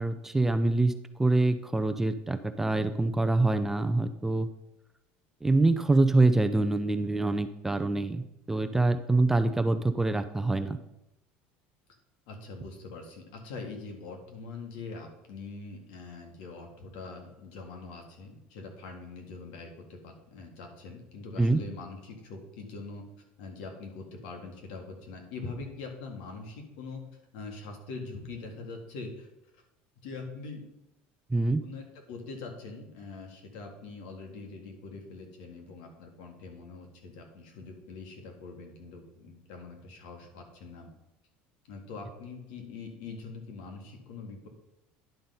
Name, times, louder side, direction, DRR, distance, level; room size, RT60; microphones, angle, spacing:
voice 1, 0.0-4.5 5.4-8.2 8.5-10.8 21.4-21.6 31.3-31.6, right 2 dB, 10° right, 9 dB, 0.4 m, -25 dB
voice 2, 12.3-23.0 23.4-27.0 27.3-29.3 29.5-29.6 30.0-30.6 31.6-40.9 41.7-44.5, left 3 dB, 80° left, 3 dB, 1.9 m, -43 dB
10.5 x 4.0 x 5.4 m, 0.88 s
cardioid pair, 140°, 5 cm